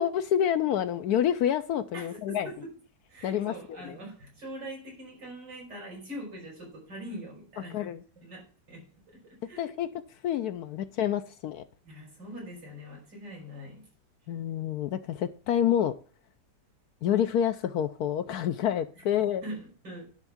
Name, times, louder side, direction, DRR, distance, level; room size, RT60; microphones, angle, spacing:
voice 1, 0.0-2.5 3.2-4.0 7.7-8.0 9.6-9.9 10.2-11.6 14.3-15.9 17.0-19.4, left 10 dB, 70° left, 1.0 m, -28 dB
voice 2, 1.9-2.7 3.1-7.8 8.2-9.7 11.8-13.9 19.0-19.1 19.4-20.1, equal, 80° right, 5.2 m, -43 dB
10.5 x 3.6 x 7.0 m
omnidirectional pair, 1.9 m